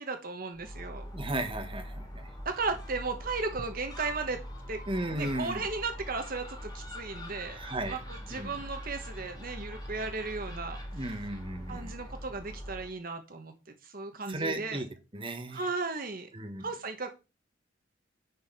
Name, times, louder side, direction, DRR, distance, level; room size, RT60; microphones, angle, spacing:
voice 1, 0.0-1.1 2.4-4.8 5.1-7.6 7.9-10.8 11.7-13.5 13.8-14.8 15.5-16.3 16.6-17.1, right 3 dB, 50° right, 6 dB, 1.2 m, -35 dB
Gull seagull, 0.5-13.0, equal, 20° left, 2.7 m, -43 dB
voice 2, 1.1-2.3 4.9-5.6 7.5-8.0 8.3-8.5 10.9-11.9 14.3-14.9 15.1-15.6 16.3-16.7, right 1 dB, 30° right, 5 dB, 1.5 m, -35 dB
9.6 x 4.8 x 5.9 m, 0.29 s
head